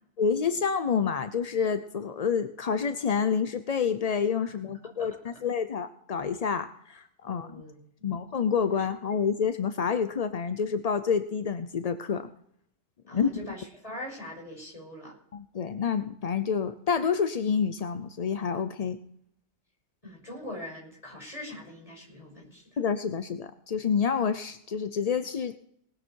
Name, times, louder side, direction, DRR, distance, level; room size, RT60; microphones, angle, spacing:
voice 1, 0.2-7.6 8.0-12.3 13.1-13.3 15.3-19.0 22.8-25.6, left 6 dB, 45° left, 10 dB, 0.5 m, -28 dB
voice 2, 5.0-5.4 7.2-8.1 8.8-8.9 13.1-15.1 20.0-22.8, left 1 dB, 25° left, -3 dB, 6.3 m, -42 dB
19.5 x 9.8 x 4.6 m, 0.70 s
omnidirectional pair, 1.4 m